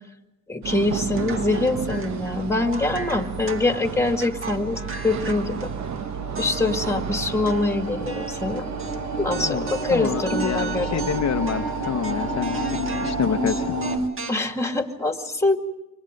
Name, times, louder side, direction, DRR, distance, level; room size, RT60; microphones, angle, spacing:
voice 1, 0.5-5.7 6.4-8.7 9.2-11.1 14.3-15.6, left 2 dB, 10° left, 5 dB, 2.1 m, -24 dB
sound 1, 0.6-14.1, right 7 dB, 55° right, 1.2 m, -33 dB
sound 2, 0.7-6.0 6.4-9.0 9.3-14.5, right 3 dB, 40° right, 1.7 m, -38 dB
sound 3, 4.0-14.0, right 2 dB, 85° right, 3.0 m, -31 dB
voice 2, 9.4-13.8, left 9 dB, 55° left, 7 dB, 0.8 m, -28 dB
28.5 x 25.0 x 5.2 m, 0.94 s
cardioid pair, 105°, 33 cm